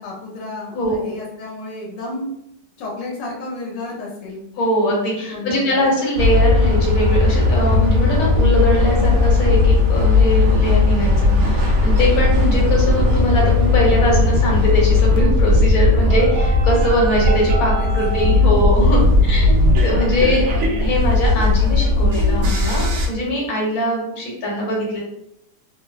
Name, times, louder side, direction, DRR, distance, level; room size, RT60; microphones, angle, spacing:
voice 1, 0.0-2.3 2.8-4.5 5.3-5.9 17.8-18.7 19.1-19.5, left 2 dB, 85° left, -3 dB, 1.3 m, -32 dB
voice 2, 0.7-1.1 4.6-20.4 20.8-25.0, equal, 60° left, -3 dB, 1.4 m, -21 dB
sound 1, 6.2-23.1, left 3 dB, 70° right, 0.8 m, -16 dB
3.0 x 2.0 x 2.3 m, 0.76 s
omnidirectional pair, 1.9 m